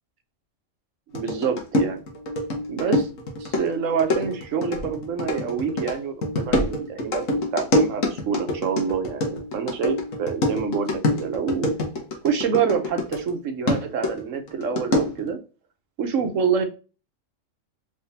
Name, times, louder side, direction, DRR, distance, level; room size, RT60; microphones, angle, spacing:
sound 1, 1.1-13.3 13.7-15.3, left 1 dB, 80° left, 1.5 m, -26 dB
voice 1, 1.1-2.0 2.7-3.1 3.6-7.2 7.5-11.7 12.2-15.4 16.0-16.6, right 6 dB, 75° right, 6 dB, 1.2 m, -26 dB
3.6 x 3.5 x 2.7 m, 0.33 s
omnidirectional pair, 1.4 m